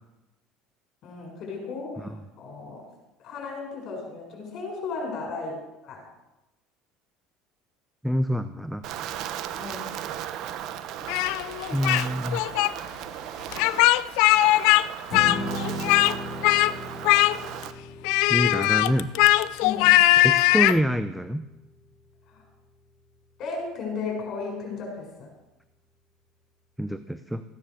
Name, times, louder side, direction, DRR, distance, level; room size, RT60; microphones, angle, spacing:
voice 1, 1.0-2.9 3.2-6.0 9.6-9.9 19.6-20.0 22.3-22.4 23.4-25.3, left 4 dB, 50° left, 0 dB, 6.8 m, -35 dB
voice 2, 8.0-8.8 11.7-12.4 18.3-19.1 20.2-21.4 26.8-27.4, equal, 5° right, 10 dB, 0.7 m, -26 dB
Wind, 8.8-17.7, right 10 dB, 60° right, 1.0 m, -36 dB
Speech, 11.1-12.0 12.3-12.7 13.5-14.8 15.1-16.1 16.4-16.7 17.0-17.6 18.0-20.8, left 17 dB, 75° left, 0.5 m, -20 dB
Strum, 15.1-21.4, left 1 dB, 35° left, 5.3 m, -37 dB
15.5 x 9.8 x 6.7 m, 0.98 s
supercardioid pair, 100°, 0 cm